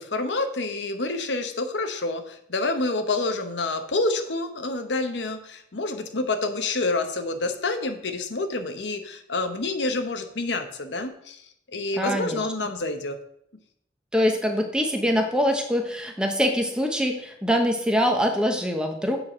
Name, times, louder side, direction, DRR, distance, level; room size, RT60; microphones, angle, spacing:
voice 1, 0.0-11.4 11.7-13.2, left 2 dB, 75° left, 7 dB, 1.0 m, -28 dB
voice 2, 12.0-12.4 14.1-19.2, equal, 5° right, 4 dB, 1.0 m, -24 dB
8.0 x 4.8 x 6.0 m, 0.70 s
head